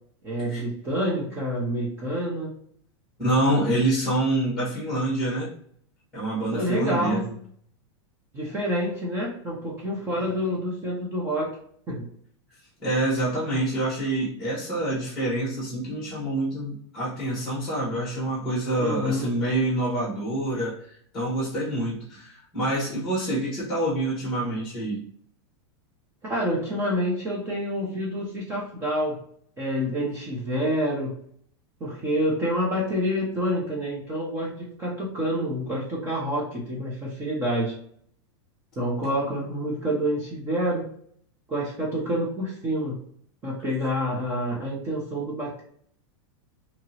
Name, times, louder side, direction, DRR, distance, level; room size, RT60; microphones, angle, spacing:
voice 1, 0.2-2.5 6.5-7.3 8.3-11.5 11.9-12.1 18.8-19.3 26.2-29.2 29.6-31.2 31.8-37.7 38.8-40.9 41.5-43.0 43.4-45.6, equal, 15° right, -3 dB, 0.6 m, -27 dB
voice 2, 3.2-5.5 6.1-7.3 12.8-25.0, right 1 dB, 5° left, -6 dB, 1.2 m, -26 dB
2.9 x 2.8 x 2.7 m, 0.63 s
supercardioid pair, 170°, 15 cm